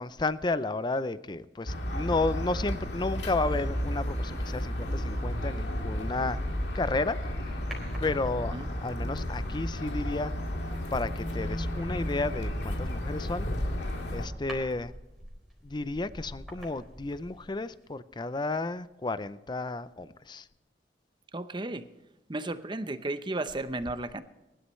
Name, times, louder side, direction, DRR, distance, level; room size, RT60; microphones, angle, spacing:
voice 1, 0.0-6.4 6.7-7.2 8.0-10.3 10.9-13.5 14.1-14.9 15.6-20.5, left 3 dB, 25° left, 15 dB, 0.5 m, -32 dB
sound 1, 1.7-14.3, equal, 80° left, 2.2 m, -33 dB
sound 2, 7.7-8.7 10.6-10.9 11.4-17.6 17.8-17.9, equal, ahead, 4.0 m, -44 dB
voice 2, 21.3-21.8 22.3-24.2, right 2 dB, 25° right, 11 dB, 0.7 m, -34 dB
22.0 x 11.5 x 3.2 m, 1.0 s
head